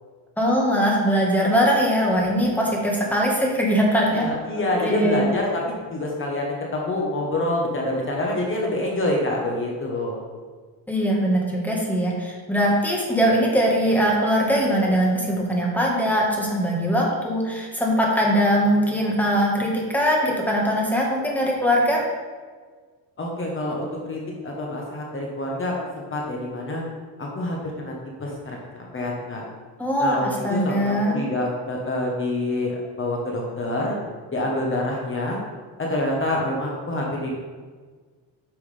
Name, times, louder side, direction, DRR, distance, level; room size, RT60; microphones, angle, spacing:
voice 1, 0.4-4.3 4.5-5.3 10.9-22.0 29.8-31.2, equal, 5° left, -2 dB, 1.5 m, -21 dB
voice 2, 4.1-10.2 23.2-26.8 27.2-27.9 28.2-29.4 30.0-34.0 34.3-35.4 35.8-37.4, left 1 dB, 30° left, -1 dB, 1.2 m, -27 dB
8.8 x 6.1 x 3.4 m, 1.5 s
cardioid pair, 140°, 43 cm